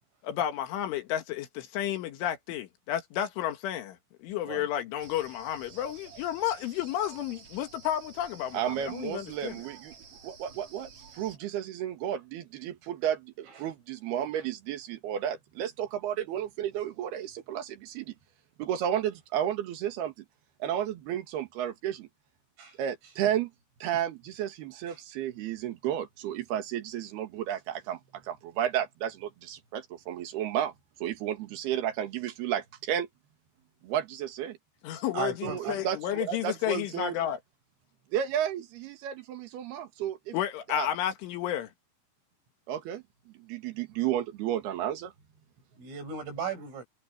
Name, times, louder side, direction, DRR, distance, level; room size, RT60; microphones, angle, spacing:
voice 1, 0.2-9.6 34.8-37.4 40.3-41.7, left 11 dB, 75° left, 4.1 m, -32 dB
sound 1, 5.0-11.4, right 5 dB, 40° right, 4.1 m, -51 dB
voice 2, 8.5-9.9 10.2-10.9 11.1-18.1 18.6-20.1 20.6-22.1 22.8-23.5 23.8-30.7 31.0-33.1 33.8-34.6 35.4-37.2 38.1-40.3 40.7-40.9 42.7-43.0 43.4-45.1, right 10 dB, 60° right, 3.5 m, -32 dB
voice 3, 35.1-35.8 45.8-46.8, right 7 dB, 90° right, 9.2 m, -36 dB
omnidirectional pair, 5.6 m